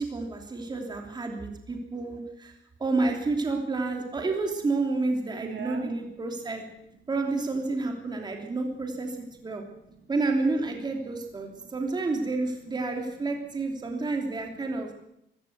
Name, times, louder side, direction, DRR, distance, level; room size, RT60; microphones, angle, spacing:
voice 1, 0.0-2.5 2.8-6.6 7.1-9.6 10.1-14.9, right 3 dB, 20° right, 3 dB, 3.1 m, -30 dB
voice 2, 5.3-5.9 6.5-6.6 8.3-9.0 9.4-10.2 10.8-10.9 11.3-11.9 12.2-12.3 13.3-13.4 13.7-14.9, right 6 dB, 70° right, 4 dB, 3.8 m, -47 dB
24.0 x 16.0 x 8.1 m, 0.79 s
cardioid pair, 175°, 20 cm